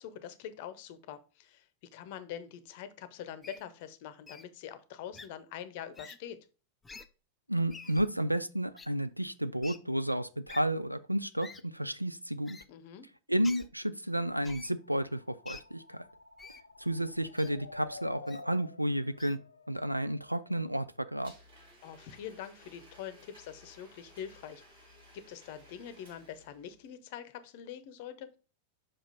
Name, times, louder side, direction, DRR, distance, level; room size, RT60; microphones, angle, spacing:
voice 1, 0.0-6.4 12.7-13.1 21.8-24.6 25.1-28.4, left 9 dB, 50° left, 0.7 m, -44 dB
Wild animals, 3.4-3.6 4.3-4.4 5.1-5.3 5.9-6.2 6.8-7.1 7.7-8.1 8.8-8.9 9.6-9.8 10.5-10.6 11.4-11.6 12.5-12.7 13.4-13.7 14.4-14.7 15.5-15.6 16.4-16.6 17.4-17.5 18.3-18.4 19.2-19.4, left 4 dB, 10° left, 0.5 m, -48 dB
voice 2, 7.5-12.6 13.3-16.0 16.8-19.4 19.7-21.3, right 1 dB, 90° right, 0.4 m, -32 dB
sound 1, 14.9-20.7, left 3 dB, 75° left, 0.5 m, -51 dB
Domestic sounds home sounds, 21.2-26.9, equal, 65° right, 3.0 m, -58 dB
5.9 x 5.1 x 4.0 m
figure-of-eight pair, 90°, 0 cm